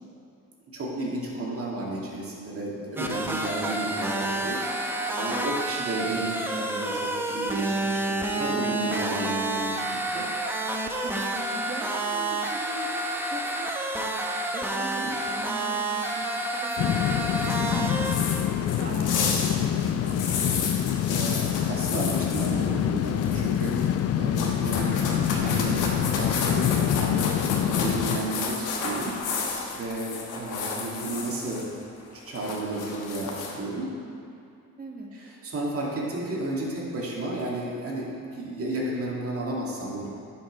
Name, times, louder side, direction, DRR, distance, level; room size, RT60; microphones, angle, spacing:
voice 1, 0.7-10.3 10.7-11.0 15.0-15.1 21.0-31.7 32.1-34.0 35.1-40.1, right 2 dB, 50° right, -4 dB, 2.2 m, -33 dB
sound 1, 3.0-18.1, right 2 dB, 5° right, 0.8 m, -29 dB
voice 2, 11.0-13.0 13.3-13.7 14.0-20.7 34.8-35.1, right 1 dB, 30° right, 0 dB, 1.4 m, -40 dB
sound 2, 16.8-28.2, left 10 dB, 55° left, 0.4 m, -26 dB
sound 3, 17.4-22.7 23.0-24.0 24.3-31.7 32.0-33.5, left 4 dB, 85° left, 1.2 m, -32 dB
10.0 x 5.3 x 5.3 m, 2.6 s
cardioid pair, 90°, 30 cm